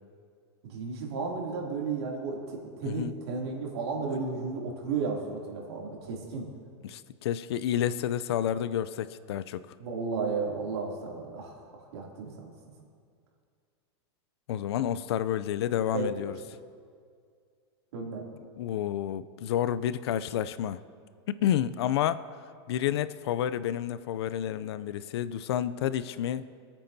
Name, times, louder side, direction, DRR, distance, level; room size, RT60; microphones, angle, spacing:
voice 1, 0.6-6.5 9.8-11.5 11.9-12.5 15.9-16.4 17.9-18.2, right 4 dB, 65° right, -2 dB, 2.7 m, -33 dB
voice 2, 2.8-3.2 6.8-9.7 14.5-16.4 18.6-20.8 21.4-22.3 22.7-26.5, left 10 dB, 65° left, 15 dB, 0.5 m, -30 dB
25.5 x 9.1 x 2.7 m, 2.2 s
supercardioid pair, 165°, 14 cm